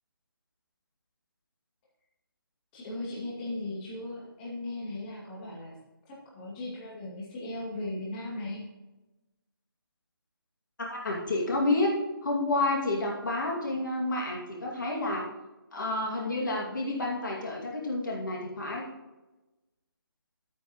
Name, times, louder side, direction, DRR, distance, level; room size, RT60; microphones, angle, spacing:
voice 1, 2.7-5.8 6.1-8.6, left 2 dB, 20° left, -5 dB, 2.3 m, -37 dB
voice 2, 10.8-11.9 12.2-15.3 15.7-18.9, left 2 dB, 55° left, -2 dB, 2.3 m, -29 dB
11.0 x 9.0 x 3.1 m, 1.1 s
figure-of-eight pair, 150°, 12 cm